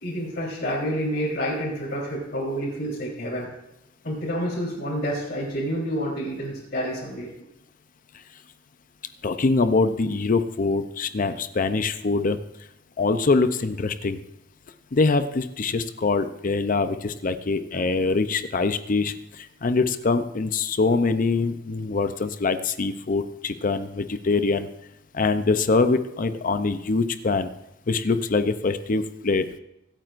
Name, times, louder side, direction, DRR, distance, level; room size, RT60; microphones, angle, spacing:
voice 1, 0.0-3.5 4.0-7.3, equal, 60° left, -9 dB, 3.6 m, -28 dB
voice 2, 9.2-12.4 13.0-14.2 14.9-24.7 25.1-27.5 27.9-29.5, left 3 dB, 45° left, 10 dB, 0.5 m, -24 dB
24.0 x 9.0 x 2.5 m, 0.84 s
head